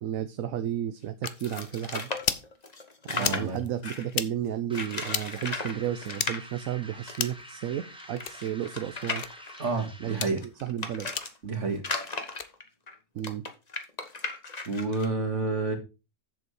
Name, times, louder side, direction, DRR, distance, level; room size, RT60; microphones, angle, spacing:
voice 1, 0.0-2.1 3.1-9.2 10.0-10.2 10.6-11.1 13.1-13.4, right 10 dB, 70° right, 1.1 m, -33 dB
sound 1, 1.2-1.4 2.2-2.5 3.2-3.4 4.1-4.3 5.1-5.3 6.1-6.3 7.1-7.4 8.2-8.4 9.2-9.3 10.1-10.3 11.1-11.3 12.3-12.5, left 8 dB, 50° left, 0.8 m, -31 dB
sound 2, 1.2-4.1 4.7-5.7 6.0-6.4 7.1-7.2 7.4-7.5 8.0-11.3 11.8-15.1, left 3 dB, 30° left, 1.3 m, -36 dB
voice 2, 3.2-3.6 9.6-10.4 11.4-11.8 14.7-15.8, right 3 dB, 55° right, 2.4 m, -29 dB
sound 3, 4.7-10.5, equal, 5° right, 1.3 m, -47 dB
7.9 x 7.4 x 4.8 m
omnidirectional pair, 1.5 m